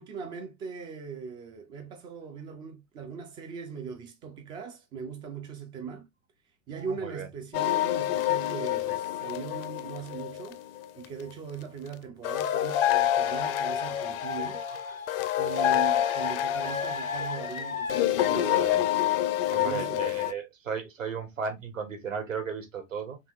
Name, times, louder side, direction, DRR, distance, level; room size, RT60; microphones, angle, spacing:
voice 1, 0.0-6.1 6.7-10.6 11.0-14.6 15.4-18.9 19.5-20.1, right 6 dB, 15° right, 0.3 m, -40 dB
voice 2, 6.7-7.3 15.5-15.8 18.2-18.8 19.5-23.2, right 6 dB, 75° right, 1.5 m, -35 dB
sound 1, 7.5-11.0 12.2-20.3, left 12 dB, 45° left, 0.6 m, -27 dB
sound 2, 12.2-18.0, left 4 dB, 90° left, 0.8 m, -37 dB
4.5 x 3.4 x 2.5 m
figure-of-eight pair, 90°, 40 cm